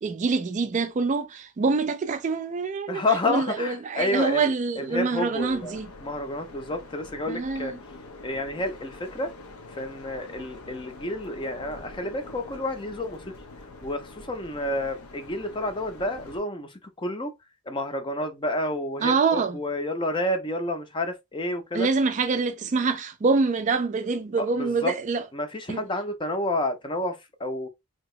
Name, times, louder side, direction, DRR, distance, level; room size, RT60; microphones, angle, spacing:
voice 1, 0.0-5.9 7.3-7.7 19.0-19.6 21.7-25.2 25.7-25.8, right 4 dB, 35° right, 0.3 m, -25 dB
voice 2, 2.9-7.7 8.2-9.3 9.7-13.2 13.8-17.3 17.7-21.9 24.4-24.9 25.3-27.7, left 1 dB, 20° left, 0.5 m, -30 dB
sound 1, 5.4-16.4, left 2 dB, 75° left, 0.7 m, -45 dB
2.8 x 2.8 x 3.1 m
head